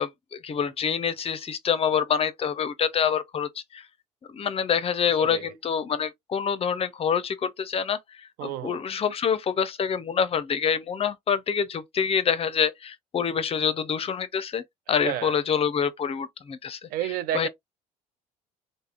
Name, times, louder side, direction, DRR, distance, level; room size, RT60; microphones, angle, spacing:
voice 1, 0.0-3.8 4.3-14.6 14.9-16.8 17.3-17.5, left 7 dB, 35° left, 0.5 m, -26 dB
voice 2, 5.1-5.5 8.4-8.8 15.0-15.4 16.9-17.5, right 12 dB, 60° right, 0.4 m, -31 dB
3.3 x 2.1 x 2.4 m
hypercardioid pair, 70°, 17 cm